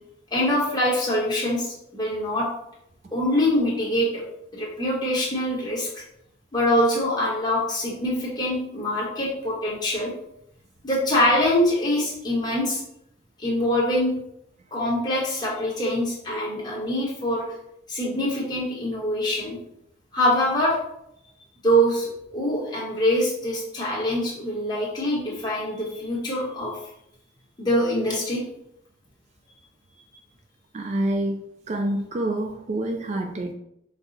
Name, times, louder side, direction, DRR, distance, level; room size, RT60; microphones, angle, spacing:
voice 1, 0.3-2.5 3.1-4.2 4.5-5.9 6.5-10.1 10.8-12.8 13.4-14.1 14.7-17.4 17.9-19.6 20.1-20.8 21.6-26.8 27.6-28.4, equal, 20° left, -5 dB, 1.4 m, -24 dB
voice 2, 30.7-33.5, right 1 dB, 35° right, 4 dB, 0.3 m, -27 dB
5.3 x 2.3 x 4.0 m, 0.78 s
head